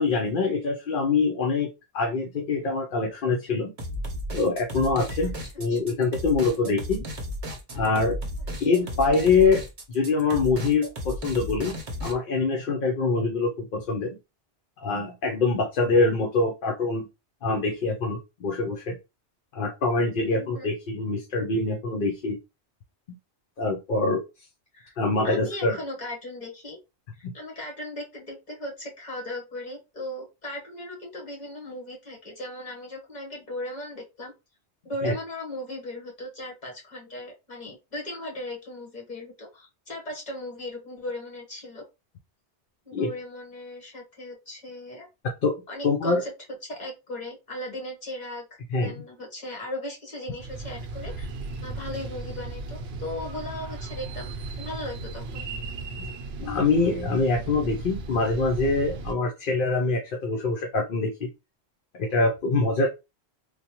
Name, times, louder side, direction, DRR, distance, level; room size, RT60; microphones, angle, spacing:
voice 1, 0.0-1.7 1.9-3.7 4.3-7.0 7.8-8.2 8.6-11.7 12.0-14.2 14.8-17.1 17.4-19.0 19.5-22.4 23.1-23.2 23.6-24.2 25.0-25.8 27.2-27.3 35.0-35.1 42.9-43.1 45.4-45.5 45.8-46.2 48.7-48.9 56.0-56.1 56.4-61.3 62.0-62.9, left 3 dB, 55° left, 2 dB, 0.8 m, -24 dB
sound 1, 3.8-12.1, left 1 dB, 40° right, 0.8 m, -34 dB
voice 2, 5.2-5.8 8.6-9.0 20.3-20.7 24.7-24.9 25.2-26.8 27.1-34.3 34.8-41.8 42.8-45.1 45.7-46.3 46.6-51.3 51.6-55.4, left 1 dB, 40° left, -1 dB, 1.4 m, -37 dB
sound 2, 50.4-59.1, right 3 dB, 75° right, 0.8 m, -36 dB
3.3 x 2.2 x 2.9 m, 0.25 s
omnidirectional pair, 1.1 m